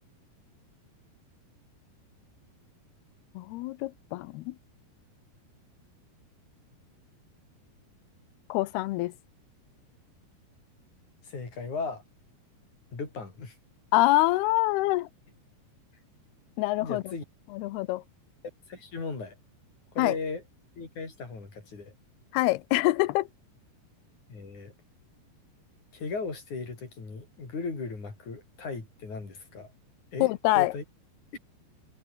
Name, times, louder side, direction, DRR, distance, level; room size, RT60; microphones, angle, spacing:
voice 1, 3.4-4.6 8.5-9.1 13.9-15.1 16.6-17.0 17.5-18.0 20.0-20.1 22.3-23.3 30.2-30.7, left 19 dB, 80° left, 2.6 m, -25 dB
voice 2, 11.2-12.0 12.9-13.5 16.8-17.2 18.7-19.4 19.9-20.4 20.8-21.9 24.3-24.7 25.9-29.7 30.1-30.3 30.5-30.8 31.3-31.4, left 4 dB, 45° left, 7.7 m, -36 dB
omnidirectional pair, 5.0 m